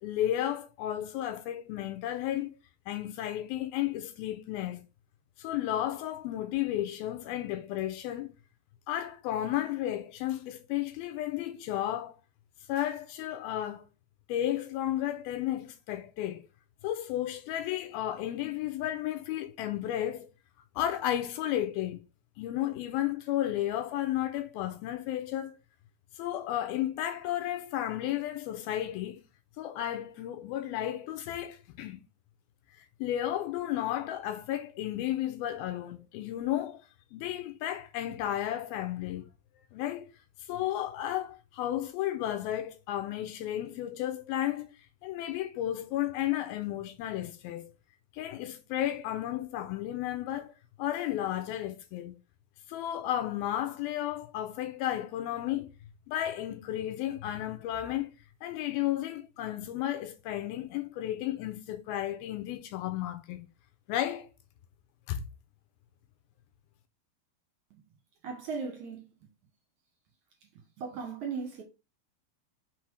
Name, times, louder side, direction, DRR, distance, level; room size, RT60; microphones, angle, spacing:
voice 1, 0.0-2.5 2.9-4.8 5.4-8.3 8.9-12.2 12.7-13.9 14.3-16.4 16.8-20.3 20.8-22.0 22.4-25.6 26.2-29.2 29.6-32.0 33.0-36.8 37.1-39.3 39.7-40.1 40.4-44.7 45.0-47.7 48.1-50.5 50.8-52.2 52.7-55.7 56.1-58.1 58.4-63.5 63.9-64.3 65.1-65.2, left 12 dB, 80° left, 2.3 m, -33 dB
voice 2, 68.2-69.1 70.5-71.6, right 5 dB, 60° right, 2.3 m, -37 dB
6.0 x 4.0 x 4.7 m
omnidirectional pair, 4.6 m